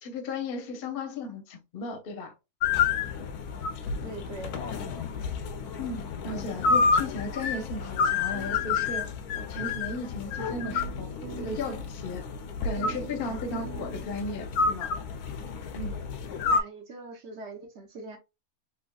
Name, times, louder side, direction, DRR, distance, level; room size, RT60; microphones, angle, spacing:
voice 1, 0.0-2.3 5.8-9.1 9.3-11.1 11.4-12.3 12.6-14.9 15.7-15.9, left 3 dB, 50° left, 0.7 m, -35 dB
sound 1, 2.6-16.6, left 5 dB, 85° left, 1.1 m, -30 dB
voice 2, 4.0-4.6 16.5-18.2, right 3 dB, 55° right, 0.9 m, -42 dB
sound 2, 8.0-9.3 9.6-9.7 10.5-11.8 12.8-14.8, right 11 dB, 70° right, 1.2 m, -44 dB
3.3 x 3.0 x 2.2 m
omnidirectional pair, 1.6 m